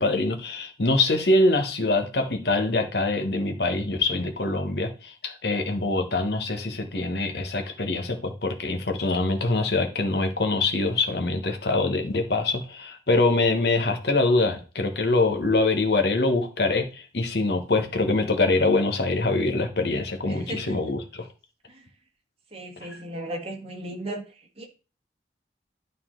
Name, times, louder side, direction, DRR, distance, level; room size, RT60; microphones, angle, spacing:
voice 1, 0.0-21.0, left 2 dB, 65° left, 1.3 m, -24 dB
voice 2, 20.3-20.8 21.7-21.9 22.5-24.7, right 1 dB, 35° right, 1.6 m, -36 dB
11.5 x 4.2 x 3.8 m
head